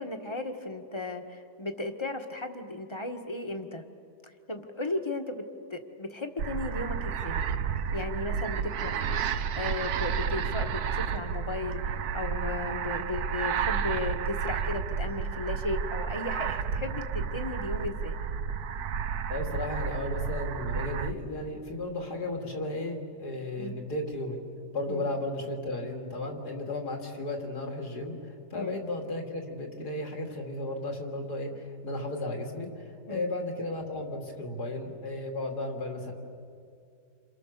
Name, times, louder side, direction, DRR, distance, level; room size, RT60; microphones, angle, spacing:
voice 1, 0.0-3.8 4.2-5.4 5.7-7.4 7.9-8.9 9.6-18.2 23.6-23.8 24.8-25.1 28.5-28.8 33.1-33.3, left 2 dB, 20° left, 5 dB, 1.5 m, -35 dB
sound 1, 6.4-21.1, right 7 dB, 70° right, 1.3 m, -31 dB
voice 2, 19.3-24.4 24.7-32.7 33.1-36.1, left 2 dB, 70° left, 2 dB, 3.4 m, -34 dB
28.5 x 28.0 x 6.9 m, 2.4 s
omnidirectional pair, 1.8 m